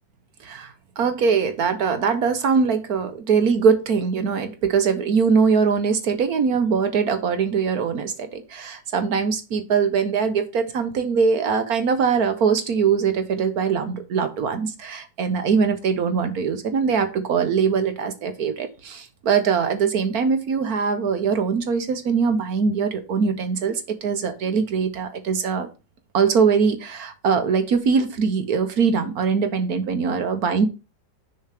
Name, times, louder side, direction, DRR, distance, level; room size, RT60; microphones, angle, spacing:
voice 1, 0.4-25.7 26.1-30.7, right 6 dB, 65° right, 9 dB, 1.4 m, -22 dB
6.9 x 4.7 x 4.9 m, 0.30 s
omnidirectional pair, 1.8 m